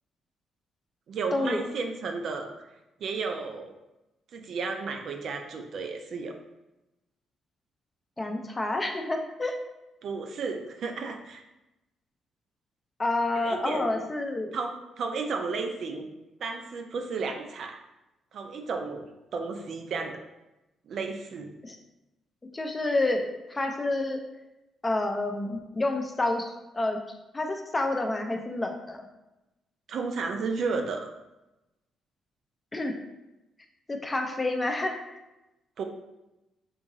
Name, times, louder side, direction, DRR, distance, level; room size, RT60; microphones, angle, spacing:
voice 1, 1.1-2.5 3.0-3.7 4.3-6.3 10.0-11.4 13.4-14.1 14.5-16.1 16.4-17.8 18.3-19.1 19.3-20.2 20.9-21.5 29.9-31.1 35.8-35.9, right 4 dB, 60° right, 4 dB, 0.4 m, -33 dB
voice 2, 8.2-9.5 13.0-14.6 21.6-21.8 22.5-24.2 24.8-27.0 27.3-29.1 32.7-32.9 33.9-35.0, left 2 dB, 20° left, 3 dB, 0.5 m, -29 dB
3.7 x 2.9 x 2.6 m, 0.96 s
cardioid pair, 90°, 0 cm